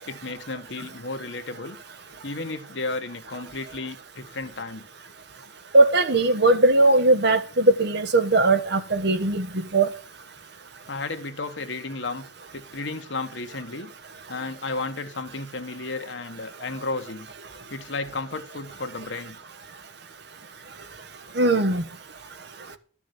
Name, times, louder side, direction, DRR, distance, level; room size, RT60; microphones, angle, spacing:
voice 1, 0.1-1.8 2.2-4.9 10.9-12.2 12.5-13.9 14.3-17.3 17.7-19.4, left 3 dB, 70° left, 1.5 m, -33 dB
voice 2, 5.7-9.5 9.7-9.9 21.4-21.8, right 2 dB, 65° right, 1.3 m, -19 dB
13.0 x 6.1 x 8.0 m
head